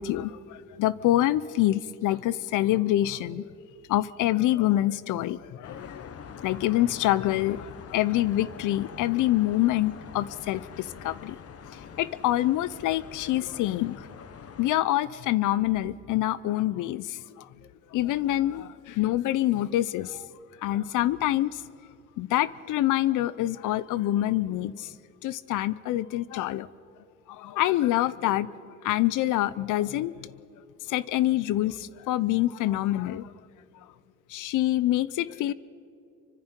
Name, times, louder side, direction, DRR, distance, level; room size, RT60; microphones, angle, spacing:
voice 1, 0.0-3.5 3.9-6.1 6.4-11.4 12.0-14.1 14.6-17.4 17.9-20.3 20.6-21.6 22.2-24.9 25.2-26.7 27.3-30.3 30.9-33.3 34.3-35.5, left 14 dB, 85° left, 18 dB, 0.7 m, -26 dB
sound 1, 5.6-14.8, left 7 dB, 50° left, 1.2 m, -44 dB
27.5 x 24.5 x 4.5 m, 2.6 s
cardioid pair, 90°, 30 cm